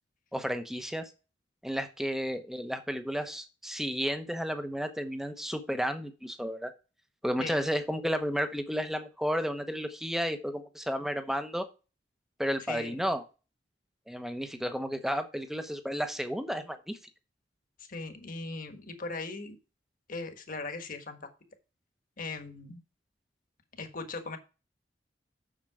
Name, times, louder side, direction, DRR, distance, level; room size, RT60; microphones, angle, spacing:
voice 1, 0.3-1.1 1.6-6.7 7.2-11.7 12.4-13.2 14.1-17.0, equal, ahead, 8 dB, 0.9 m, -32 dB
voice 2, 12.7-13.0 17.8-19.6 20.1-21.3 22.2-22.8 23.8-24.4, left 3 dB, 50° left, 6 dB, 1.5 m, -39 dB
7.5 x 6.7 x 4.8 m, 0.32 s
head